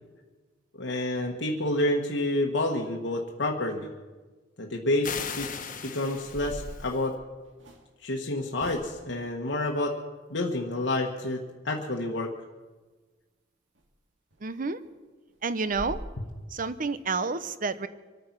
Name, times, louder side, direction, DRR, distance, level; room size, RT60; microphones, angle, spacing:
voice 1, 0.7-3.9 4.6-5.1 5.4-5.5 5.8-7.2 8.0-9.9 10.3-12.3, left 1 dB, 75° left, 0 dB, 1.3 m, -29 dB
sound 1, 5.0-7.1, left 6 dB, 45° left, 1.3 m, -37 dB
sound 2, 6.1-7.9 8.6-9.2 13.8-13.9 14.3-14.4 14.8-14.9 15.3-15.4 15.7-16.0, equal, 90° right, 2.3 m, -43 dB
voice 2, 14.4-14.8 15.4-16.0 16.5-17.9, right 4 dB, 45° right, 13 dB, 0.7 m, -29 dB
25.5 x 9.3 x 5.9 m, 1.3 s
head